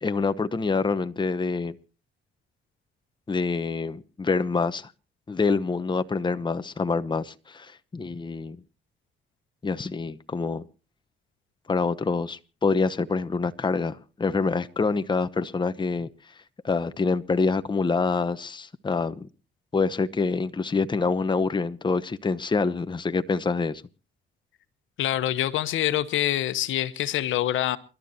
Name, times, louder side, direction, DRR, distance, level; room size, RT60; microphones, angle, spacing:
voice 1, 0.0-1.8 3.3-4.9 5.3-8.6 9.6-10.6 11.7-16.1 16.6-19.3 19.7-23.8, left 4 dB, 25° left, 1.0 m, -26 dB
voice 2, 25.0-27.8, left 12 dB, 80° left, 1.1 m, -25 dB
29.0 x 12.5 x 2.8 m
cardioid pair, 90°, 20 cm